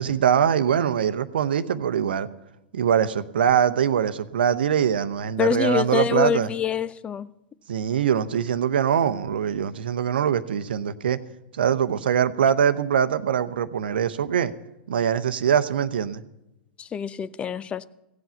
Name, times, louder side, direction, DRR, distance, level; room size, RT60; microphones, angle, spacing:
voice 1, 0.0-2.3 2.7-6.5 7.7-11.2 11.6-14.5 14.9-16.2, right 8 dB, 70° right, 0.7 m, -23 dB
voice 2, 5.4-7.3 16.8-17.8, left 7 dB, 20° left, 0.4 m, -25 dB
16.5 x 7.9 x 7.0 m
figure-of-eight pair, 100°, 6 cm